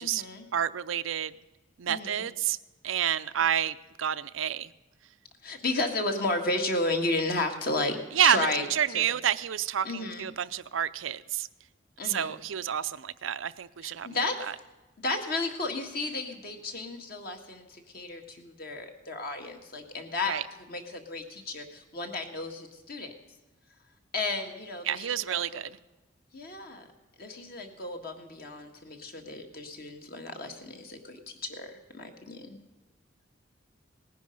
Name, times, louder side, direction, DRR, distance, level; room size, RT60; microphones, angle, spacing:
voice 1, 0.0-0.5 1.9-2.2 5.4-9.1 9.8-10.3 12.0-12.3 13.8-14.4 15.0-20.4 20.7-23.1 24.1-25.6 26.3-26.8 27.2-32.6, left 2 dB, 50° left, 4 dB, 1.8 m, -33 dB
voice 2, 0.5-1.3 1.8-2.6 2.8-4.7 8.1-11.5 12.0-14.3 20.2-20.4 24.8-25.8, right 9 dB, 80° right, 13 dB, 0.5 m, -29 dB
18.5 x 10.5 x 5.3 m, 1.1 s
head